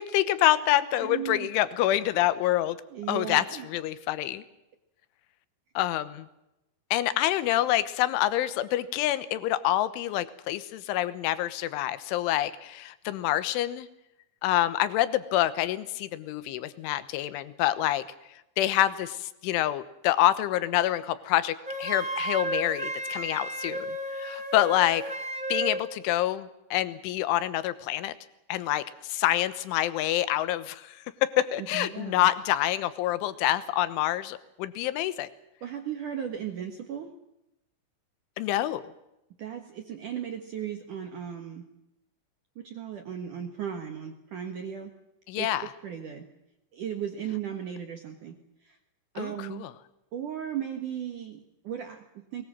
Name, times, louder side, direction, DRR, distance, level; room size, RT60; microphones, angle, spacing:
voice 1, 0.0-2.8 3.1-4.4 5.7-6.3 6.9-13.9 14.4-18.0 18.6-25.0 25.5-28.1 28.5-35.3 38.4-38.8 45.3-45.7 49.2-49.7, left 14 dB, 80° left, 14 dB, 3.4 m, -27 dB
voice 2, 1.0-1.5 2.9-3.7 31.6-32.2 35.6-37.1 39.4-41.7 42.6-44.9 45.4-46.2 46.7-48.8 49.1-49.7 50.1-52.4, right 9 dB, 70° right, 5 dB, 2.0 m, -36 dB
Wind instrument woodwind instrument, 21.6-25.8, right 1 dB, 40° right, 0.6 m, -33 dB
22.0 x 22.0 x 7.6 m, 0.87 s
omnidirectional pair, 5.9 m